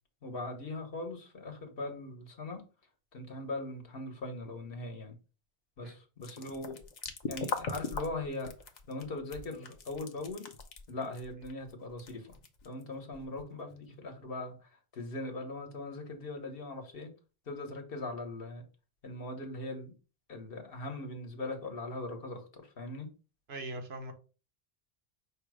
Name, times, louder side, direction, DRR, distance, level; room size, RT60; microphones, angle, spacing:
voice 1, 0.2-2.6 3.1-5.2 5.8-6.8 7.3-8.5 8.9-10.5 10.9-12.3 12.6-17.1 17.5-18.6 19.0-19.9 20.3-23.1, left 2 dB, 65° left, 4 dB, 1.2 m, -40 dB
sound 1, 6.2-13.9, left 4 dB, 50° left, 0.7 m, -41 dB
voice 2, 23.5-24.1, right 2 dB, 80° right, 5 dB, 1.1 m, -40 dB
5.2 x 2.0 x 4.7 m, 0.35 s
omnidirectional pair, 1.0 m